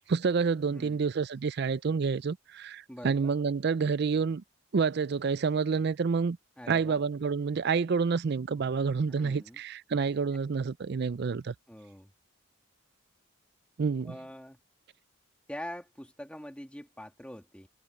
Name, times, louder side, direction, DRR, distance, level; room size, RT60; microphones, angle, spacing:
voice 1, 0.1-4.4 4.7-6.4 6.7-11.5 13.8-14.1, right 5 dB, 50° right, 0.4 m, -28 dB
voice 2, 0.7-1.0 2.9-3.3 6.6-7.0 9.1-9.6 11.7-12.1 14.0-14.6 15.5-17.7, equal, 5° left, 2.9 m, -44 dB
head